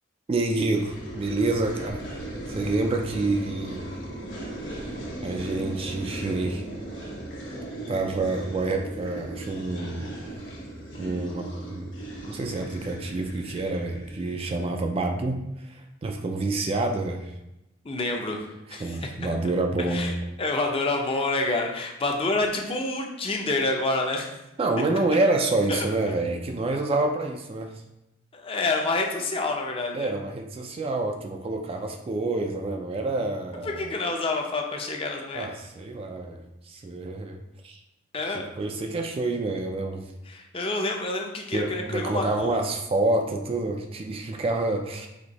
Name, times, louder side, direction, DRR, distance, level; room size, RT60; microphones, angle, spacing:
voice 1, 0.3-2.0 2.5-3.9 4.9-5.0 5.2-6.6 7.9-10.1 11.0-11.9 12.3-17.3 18.8-20.2 24.6-27.7 29.9-33.9 35.3-37.8 38.2-40.0 41.5-45.1, right 2 dB, 30° right, 3 dB, 0.3 m, -28 dB
sound 1, 0.8-14.6, right 1 dB, 65° left, 1.3 m, -37 dB
voice 2, 17.8-19.0 19.9-20.1 20.4-24.3 25.7-25.9 28.3-30.1 33.6-35.5 38.1-38.4 40.3-42.6, left 2 dB, 30° left, 1 dB, 0.6 m, -28 dB
4.3 x 2.7 x 4.0 m, 0.92 s
head